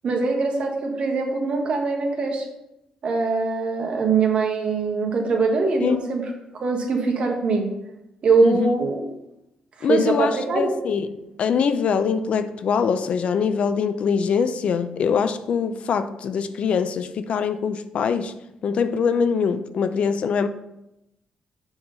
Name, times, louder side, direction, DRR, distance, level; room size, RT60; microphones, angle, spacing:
voice 1, 0.0-2.4 3.0-6.2 6.5-7.7 8.2-9.0 9.8-10.7, right 4 dB, 55° right, 1.5 m, -22 dB
voice 2, 9.8-18.4 18.6-20.5, left 6 dB, 60° left, 0.5 m, -23 dB
6.9 x 3.9 x 5.4 m
cardioid pair, 110°, 2 cm